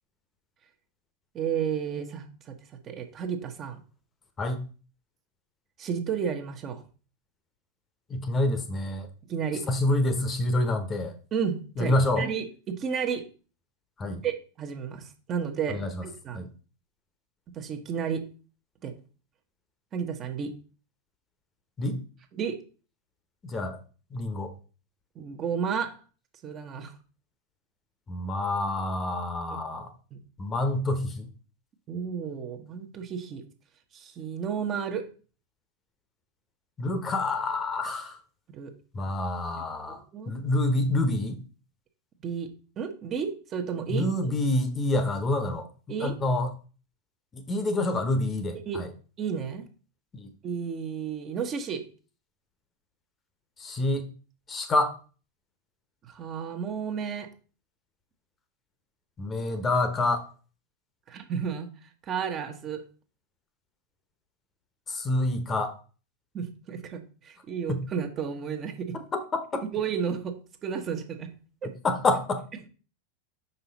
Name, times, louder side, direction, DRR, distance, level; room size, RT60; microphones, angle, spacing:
voice 1, 1.3-2.5 2.8-3.8 5.8-6.8 9.3-9.6 11.3-13.3 14.2-16.4 17.5-18.2 18.8-18.9 19.9-20.5 22.4-22.6 25.1-26.0 26.4-26.9 29.5-29.6 30.1-30.2 31.9-33.4 33.9-35.1 38.5-38.7 40.1-40.3 42.2-42.5 42.8-44.3 45.9-46.1 48.7-48.8 49.2-49.6 50.4-51.9 56.0-57.3 61.1-62.8 66.3-69.0 69.7-71.3 71.6-71.7, right 7 dB, 30° right, 5 dB, 1.1 m, -32 dB
voice 2, 8.1-9.1 9.7-11.1 11.8-12.3 14.0-14.2 15.7-16.0 16.3-16.5 21.8-22.0 23.4-23.8 24.1-24.5 28.1-29.9 30.4-31.3 36.8-38.2 38.9-41.4 43.9-45.7 46.0-46.5 47.3-48.9 50.1-50.3 53.6-54.1 54.5-54.9 59.2-60.3 64.9-65.7 67.7-67.8 69.1-69.6 71.8-72.4, left 2 dB, 20° left, 9 dB, 1.0 m, -27 dB
5.8 x 5.6 x 4.1 m, 0.37 s
figure-of-eight pair, 90°, 0 cm